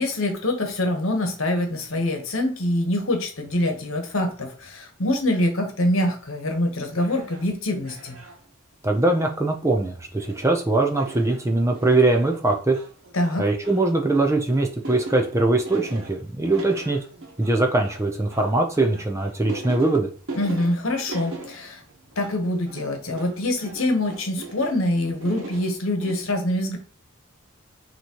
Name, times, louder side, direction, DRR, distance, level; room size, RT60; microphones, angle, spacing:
voice 1, 0.0-8.2 13.1-13.5 20.3-21.8 22.2-26.8, left 1 dB, 65° left, 4 dB, 1.1 m, -25 dB
sound 1, 6.9-7.5 7.8-8.4 9.0-9.3 9.7-9.8 10.2-10.6 10.9-24.9 25.1-26.1, right 2 dB, 60° right, 1.2 m, -40 dB
voice 2, 8.8-12.8 13.4-17.0 17.4-20.1, right 2 dB, 15° right, 2 dB, 0.5 m, -21 dB
5.8 x 2.9 x 3.0 m, 0.43 s
head